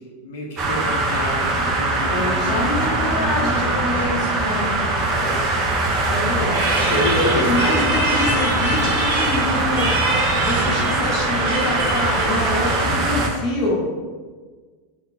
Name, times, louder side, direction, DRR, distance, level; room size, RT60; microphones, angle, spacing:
voice 1, 0.2-3.8 5.0-5.4 6.4-6.5 6.9-7.8, left 2 dB, 75° left, -1 dB, 0.9 m, -30 dB
sound 1, 0.6-13.3, right 2 dB, 20° right, 0.4 m, -22 dB
voice 2, 2.1-4.9 6.1-14.0, left 1 dB, 25° left, -4 dB, 0.5 m, -26 dB
sound 2, 6.5-12.9, right 1 dB, 50° right, 0.9 m, -25 dB
5.6 x 2.3 x 2.3 m, 1.4 s
supercardioid pair, 175°, 0 cm